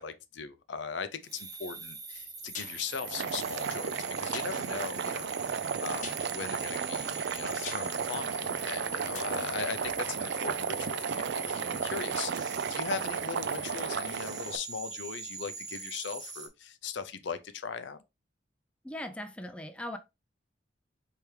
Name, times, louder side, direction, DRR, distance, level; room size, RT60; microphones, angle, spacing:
voice 1, 0.0-5.3 5.8-18.0, left 6 dB, 65° left, 0.5 m, -39 dB
sound 1, 1.2-16.5, right 4 dB, 20° right, 0.9 m, -43 dB
sound 2, 2.1-11.0 11.3-11.4, left 6 dB, 40° left, 0.9 m, -49 dB
Boiling, 3.0-14.6, right 7 dB, 60° right, 0.4 m, -34 dB
voice 2, 18.8-20.0, left 1 dB, 5° left, 0.4 m, -39 dB
4.6 x 3.4 x 3.2 m
head